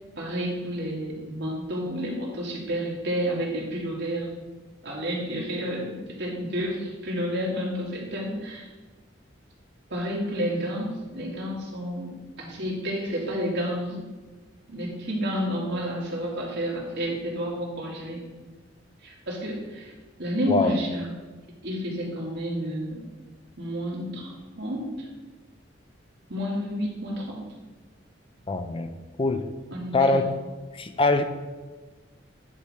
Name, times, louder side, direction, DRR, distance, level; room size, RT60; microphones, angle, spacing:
voice 1, 0.2-4.3 4.8-8.7 9.9-14.1 14.7-18.2 19.0-19.9 20.2-21.1 21.6-23.0 23.6-25.1 26.3-27.4 29.7-30.2, equal, 65° right, -3 dB, 2.2 m, -30 dB
voice 2, 28.5-28.9 29.2-29.5 29.9-30.3 30.7-31.2, left 3 dB, 30° left, 8 dB, 0.5 m, -23 dB
9.7 x 4.2 x 4.9 m, 1.3 s
head